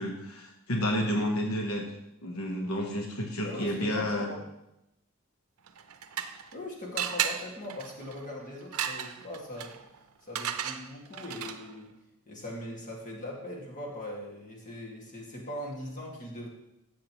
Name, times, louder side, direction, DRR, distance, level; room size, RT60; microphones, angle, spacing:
voice 1, 0.0-1.9 2.2-4.3, left 1 dB, 80° left, 2 dB, 1.1 m, -30 dB
voice 2, 3.4-4.4 6.5-9.7 10.2-11.9 12.3-16.5, left 1 dB, 35° left, -2 dB, 2.1 m, -40 dB
sound 1, 5.7-6.6 7.0-11.8, right 9 dB, 80° right, 0.6 m, -35 dB
12.5 x 7.7 x 3.1 m, 0.87 s
head